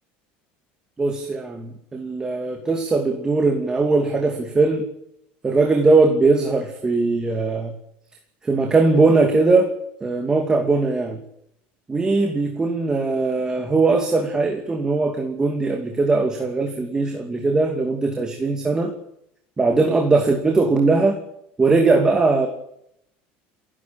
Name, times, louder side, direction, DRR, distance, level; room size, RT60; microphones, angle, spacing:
voice 1, 1.0-4.9 5.4-7.7 8.4-9.7 10.0-11.2 11.9-18.9 19.6-21.2 21.6-22.5, right 3 dB, 15° right, 4 dB, 2.6 m, -20 dB
29.0 x 11.5 x 9.0 m, 0.77 s
cardioid pair, 140°, 5 cm